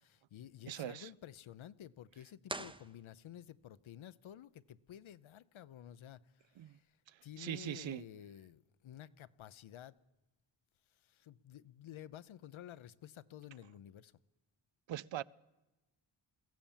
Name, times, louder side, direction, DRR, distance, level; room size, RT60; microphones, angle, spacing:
voice 1, 0.0-7.0 7.2-9.9 10.9-14.1, left 11 dB, 75° left, 0.8 m, -52 dB
voice 2, 0.7-1.1 6.6-6.8 7.1-8.0 14.9-15.2, right 12 dB, 70° right, 0.6 m, -42 dB
sound 1, 2.4-3.6, right 2 dB, 10° right, 0.6 m, -45 dB
22.5 x 15.5 x 7.4 m
wide cardioid pair, 100°, 48 cm